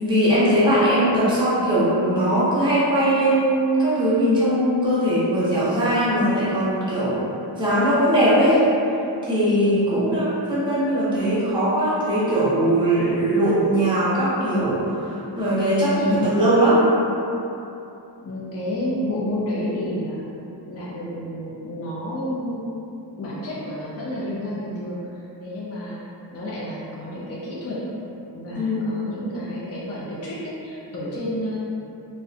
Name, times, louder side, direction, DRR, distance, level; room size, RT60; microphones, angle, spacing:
voice 1, 0.0-7.2 7.6-8.6 9.2-16.8 28.5-28.9, right 1 dB, 10° right, -10 dB, 0.7 m, -20 dB
voice 2, 9.6-10.0 15.9-16.3 18.2-20.3 20.7-22.6 23.2-26.0 26.3-27.8 28.3-31.6, left 1 dB, 35° left, -7 dB, 0.4 m, -30 dB
2.5 x 2.1 x 2.4 m, 2.8 s
wide cardioid pair, 55°, 45 cm